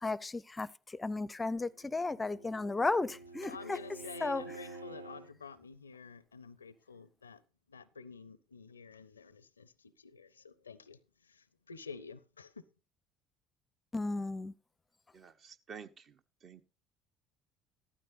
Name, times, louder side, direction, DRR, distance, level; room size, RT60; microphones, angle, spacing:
voice 1, 0.0-3.8 4.2-4.4 13.9-14.5, left 3 dB, 20° left, 0.5 m, -34 dB
Bowed string instrument, 1.6-5.3, right 3 dB, 80° right, 0.5 m, -49 dB
voice 2, 3.4-12.7, left 5 dB, 80° left, 0.5 m, -50 dB
voice 3, 15.1-16.6, right 6 dB, 40° right, 0.9 m, -51 dB
15.0 x 12.5 x 2.6 m
figure-of-eight pair, 55°, 0 cm